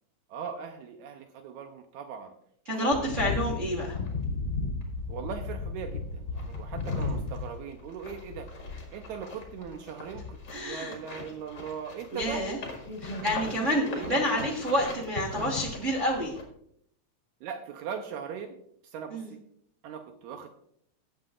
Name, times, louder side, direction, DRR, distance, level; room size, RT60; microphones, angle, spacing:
voice 1, 0.3-2.4 2.7-3.6 3.8-4.0 5.1-8.5 8.9-12.5 13.2-14.5 17.4-18.6 18.8-19.4 19.8-20.5, right 7 dB, 80° right, 6 dB, 2.0 m, -40 dB
voice 2, 2.7-4.0 10.5-10.9 12.1-12.6 13.0-16.3 19.1-19.3, equal, 50° right, -1 dB, 0.9 m, -28 dB
sound 1, 2.9-16.4, left 3 dB, 40° left, 2.3 m, -36 dB
18.0 x 7.7 x 2.4 m, 0.70 s
omnidirectional pair, 3.4 m